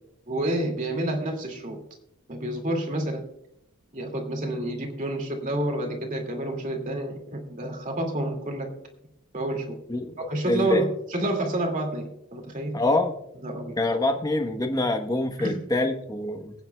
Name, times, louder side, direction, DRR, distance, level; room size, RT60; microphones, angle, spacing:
voice 1, 0.3-1.8 2.3-3.2 3.9-8.7 9.3-9.8 10.2-12.8 13.4-13.8 15.4-15.6, right 1 dB, 35° right, 2 dB, 2.2 m, -29 dB
voice 2, 10.5-10.8 12.7-13.1 13.8-16.5, left 2 dB, 15° left, 5 dB, 1.0 m, -25 dB
23.5 x 9.3 x 2.2 m, 0.80 s
head